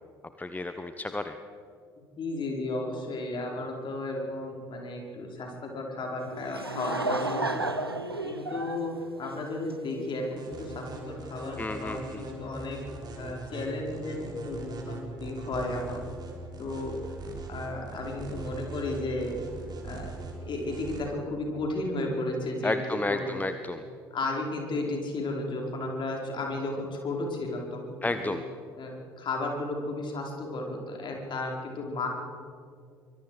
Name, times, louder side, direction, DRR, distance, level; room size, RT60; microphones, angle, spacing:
voice 1, 0.4-1.4 11.6-12.3 22.6-23.8 28.0-28.4, left 2 dB, 15° left, 9 dB, 1.1 m, -32 dB
voice 2, 2.0-7.7 8.2-12.8 13.2-16.0 16.6-17.0 17.5-19.4 19.8-23.4 24.1-28.4 28.7-32.1, left 2 dB, 40° left, 0 dB, 5.0 m, -34 dB
Laughter / Crowd, 6.2-10.0, right 2 dB, 85° right, 1.0 m, -32 dB
sound 1, 10.4-21.0, right 2 dB, 35° right, 4.4 m, -41 dB
24.5 x 23.5 x 5.0 m, 2.4 s
figure-of-eight pair, 55°, 12 cm